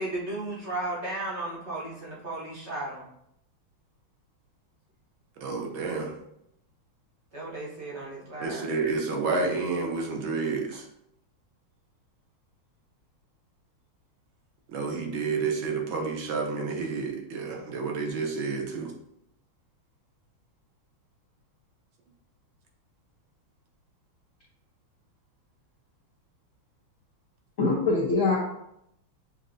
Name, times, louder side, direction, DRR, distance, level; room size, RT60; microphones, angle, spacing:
voice 1, 0.0-3.0 7.3-8.6, right 2 dB, 45° right, -5 dB, 0.9 m, -34 dB
voice 2, 5.4-6.1 8.4-10.8 14.7-18.9, right 4 dB, 75° right, 1 dB, 1.5 m, -30 dB
voice 3, 27.6-28.4, left 3 dB, 60° left, -5 dB, 0.8 m, -23 dB
7.5 x 2.6 x 2.6 m, 0.77 s
omnidirectional pair, 2.3 m